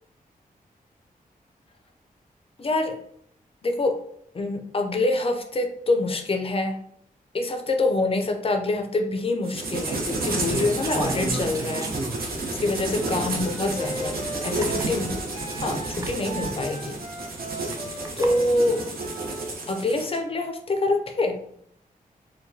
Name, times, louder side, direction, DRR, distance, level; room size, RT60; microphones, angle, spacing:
voice 1, 2.6-3.0 3.6-4.0 4.3-6.8 7.3-11.9 12.5-15.1 15.6-17.0 18.2-18.8 19.7-21.4, left 2 dB, 40° left, 4 dB, 0.4 m, -25 dB
sound 1, 9.4-20.2, right 2 dB, 80° right, 0.8 m, -31 dB
sound 2, 10.4-12.4 13.0-13.1 14.3-14.4 14.6-14.9 15.9-16.1 17.7-18.3, right 2 dB, 25° right, 0.4 m, -33 dB
Wind instrument woodwind instrument, 12.9-19.5, right 1 dB, 60° right, 1.5 m, -38 dB
4.5 x 2.2 x 2.7 m, 0.67 s
wide cardioid pair, 160°, 15 cm